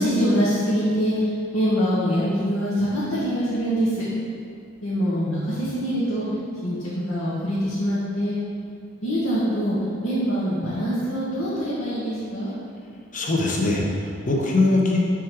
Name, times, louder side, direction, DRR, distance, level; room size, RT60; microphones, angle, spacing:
voice 1, 0.0-4.0 4.8-6.3 6.6-8.4 9.0-9.8 10.0-12.5, equal, 90° left, -10 dB, 1.1 m, -24 dB
voice 2, 13.1-15.0, left 2 dB, 40° left, -1 dB, 0.7 m, -22 dB
6.1 x 3.6 x 4.5 m, 2.4 s
head